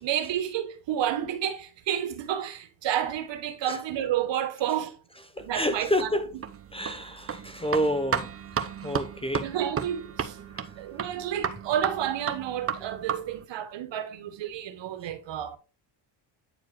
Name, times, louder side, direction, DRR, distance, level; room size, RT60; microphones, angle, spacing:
voice 1, 0.0-5.0 5.4-6.1 9.4-10.4 10.8-15.6, right 10 dB, 65° right, 1.5 m, -30 dB
voice 2, 5.4-6.3 6.7-8.3 8.6-9.5, equal, 10° left, 0.6 m, -29 dB
sound 1, 5.4-13.4, right 7 dB, 30° right, 0.8 m, -34 dB
9.4 x 4.7 x 3.1 m
cardioid pair, 95°, 47 cm